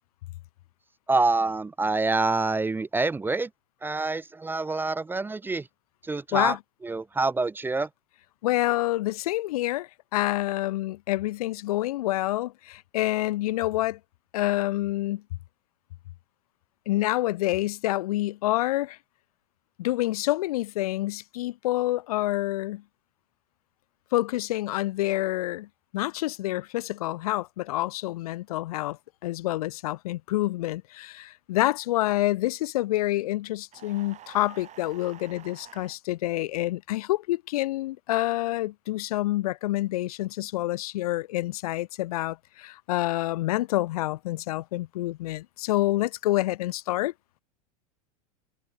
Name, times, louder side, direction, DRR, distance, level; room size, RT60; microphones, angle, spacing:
voice 1, 1.1-3.5 3.8-5.7 6.0-6.6 6.8-7.9, right 3 dB, 10° right, 0.6 m, -26 dB
voice 2, 8.4-14.0 14.3-15.2 16.9-19.0 19.8-22.8 24.1-25.7 25.9-47.1, left 16 dB, 70° left, 0.7 m, -27 dB
sound 1, 33.7-36.0, right 11 dB, 35° right, 5.0 m, -48 dB
hypercardioid pair, 95°, 20 cm